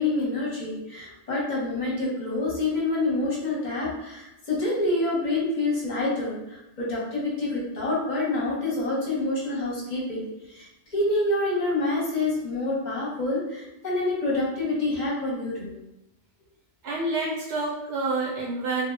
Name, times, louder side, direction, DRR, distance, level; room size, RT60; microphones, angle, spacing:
voice 1, 0.0-15.7, left 2 dB, 45° left, -5 dB, 0.8 m, -27 dB
voice 2, 16.8-18.9, right 2 dB, 65° right, -4 dB, 0.9 m, -28 dB
2.1 x 2.0 x 3.2 m, 0.89 s
omnidirectional pair, 1.2 m